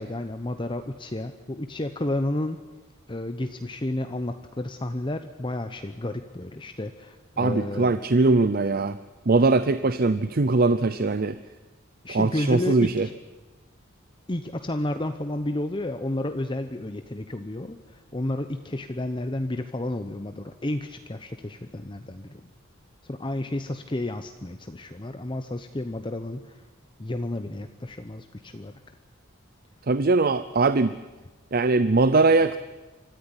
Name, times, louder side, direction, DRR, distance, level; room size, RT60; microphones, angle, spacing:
voice 1, 0.0-2.6 3.1-7.9 12.0-13.1 14.3-22.4 23.1-26.6 27.0-28.7, left 1 dB, 25° left, 8 dB, 0.8 m, -31 dB
voice 2, 7.4-9.0 9.3-11.4 12.1-13.1 29.9-30.9 31.5-32.6, right 3 dB, 45° right, 13 dB, 0.6 m, -21 dB
25.0 x 14.0 x 9.9 m, 1.2 s
head